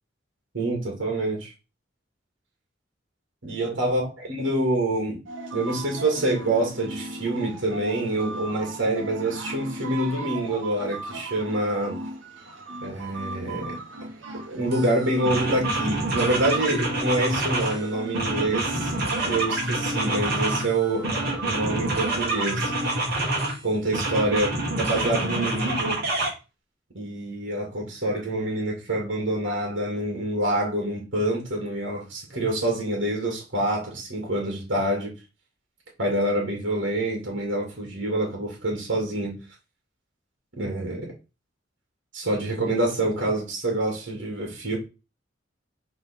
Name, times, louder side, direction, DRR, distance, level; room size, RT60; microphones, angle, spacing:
voice 1, 0.5-1.5 3.4-4.1 4.4-5.2 5.5-12.0 12.8-13.8 14.5-18.9 19.2-22.7 23.6-26.0 26.9-35.1 36.0-39.4 40.6-41.1 42.1-44.8, right 1 dB, 75° right, 2.6 m, -26 dB
sound 1, 5.3-23.1, right 2 dB, 90° right, 1.8 m, -37 dB
sound 2, 14.7-14.9 15.2-17.8 18.1-20.7 21.0-23.6 23.9-26.3, right 2 dB, 55° right, 2.6 m, -27 dB
5.5 x 3.9 x 5.4 m
head